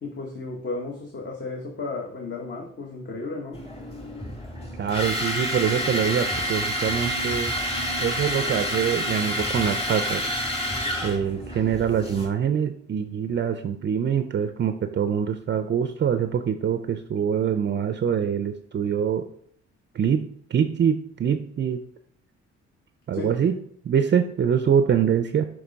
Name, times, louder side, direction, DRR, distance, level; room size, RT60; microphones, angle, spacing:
voice 1, 0.0-3.6 23.1-23.4, left 3 dB, 35° left, 1 dB, 1.1 m, -33 dB
sound 1, 3.5-12.3, equal, 20° left, 1.7 m, -28 dB
voice 2, 4.8-7.5 8.0-10.2 11.0-19.3 19.9-20.2 20.5-21.8 23.1-23.6 23.8-25.5, right 8 dB, 40° right, 8 dB, 0.5 m, -24 dB
6.3 x 3.2 x 5.1 m, 0.64 s
cardioid pair, 90°, 30 cm